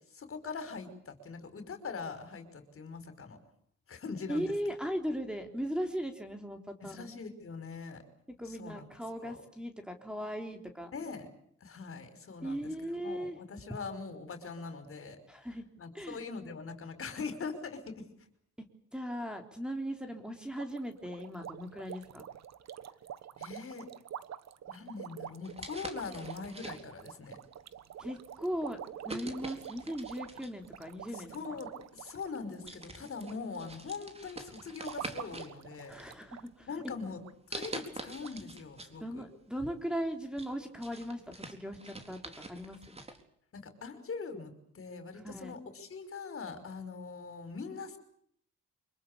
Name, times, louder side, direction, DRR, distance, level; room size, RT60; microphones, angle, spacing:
voice 1, 0.1-3.4 3.9-4.5 6.8-8.0 8.5-8.8 9.2-9.4 10.9-11.3 11.6-12.7 13.0-15.2 15.8-18.1 23.4-23.9 24.7-27.4 31.1-35.9 36.7-37.2 37.5-39.2 43.5-48.0, left 4 dB, 45° left, 9 dB, 5.5 m, -42 dB
voice 2, 4.3-7.1 8.4-10.9 12.4-13.4 15.3-15.7 15.9-16.2 18.9-22.2 28.0-31.6 35.9-36.7 39.0-43.0 45.2-45.6, equal, 5° right, 5 dB, 3.5 m, -38 dB
sound 1, 20.6-33.3 33.6-34.0 34.5-36.5 36.7-36.9 37.2-37.3 37.9-38.0 38.2-38.4, right 10 dB, 60° right, 1.4 m, -46 dB
sound 2, 25.4-27.1 27.8-28.1 29.1-30.7 31.7-31.8 32.3-32.4 32.7-35.5 35.9-36.6 37.5-38.9 39.3-39.4 39.9-43.2, right 2 dB, 20° right, 4.0 m, -45 dB
25.5 x 22.5 x 8.4 m, 0.67 s
cardioid pair, 90°, 30 cm